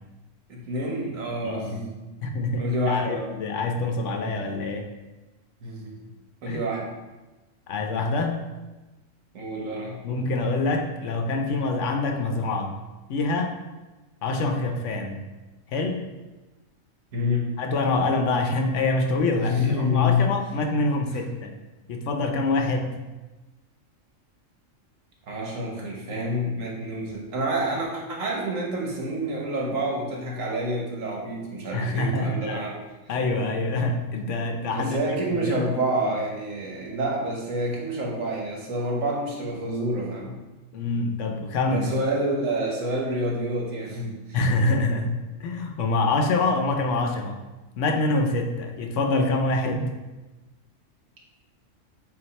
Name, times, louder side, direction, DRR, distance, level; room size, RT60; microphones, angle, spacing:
voice 1, 0.5-2.0 2.6-3.3 5.6-6.0 6.4-6.9 9.3-10.0 17.1-17.6 19.4-20.3 25.3-32.8 34.7-40.3 41.7-44.4, equal, 75° right, -1 dB, 1.5 m, -28 dB
voice 2, 1.4-1.8 2.2-4.9 6.5-6.6 7.7-8.4 10.0-12.7 13.1-13.6 14.2-15.2 15.7-16.0 17.6-21.5 21.9-23.0 31.7-32.6 33.1-35.7 40.7-41.9 44.3-47.4 47.8-50.0, left 2 dB, 70° left, 4 dB, 1.0 m, -25 dB
8.3 x 2.8 x 4.1 m, 1.1 s
omnidirectional pair, 1.4 m